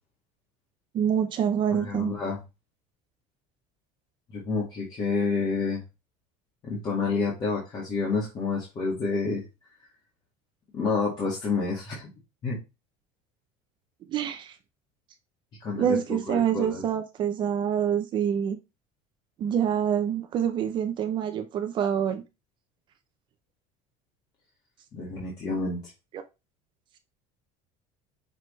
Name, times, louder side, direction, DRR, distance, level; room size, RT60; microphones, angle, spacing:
voice 1, 0.9-2.1 14.1-14.5 15.8-18.6 19.4-22.2, right 8 dB, 30° right, 0.7 m, -26 dB
voice 2, 1.7-2.4 4.3-5.8 6.6-9.4 10.7-12.1 12.4-12.6 15.6-16.0 16.3-16.8 24.9-25.8, left 4 dB, 30° left, 1.9 m, -29 dB
6.2 x 4.8 x 3.2 m
cardioid pair, 180°, 15 cm